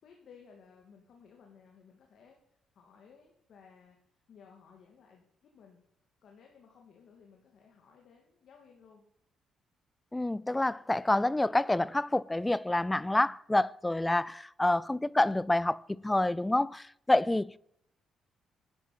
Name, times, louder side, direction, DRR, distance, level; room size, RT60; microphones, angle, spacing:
voice 1, 0.0-2.4 2.7-5.8 6.2-9.0, left 6 dB, 65° left, 2.6 m, -58 dB
voice 2, 10.1-17.6, left 1 dB, 10° left, 0.4 m, -28 dB
11.5 x 10.0 x 6.0 m
cardioid pair, 90°, 0 cm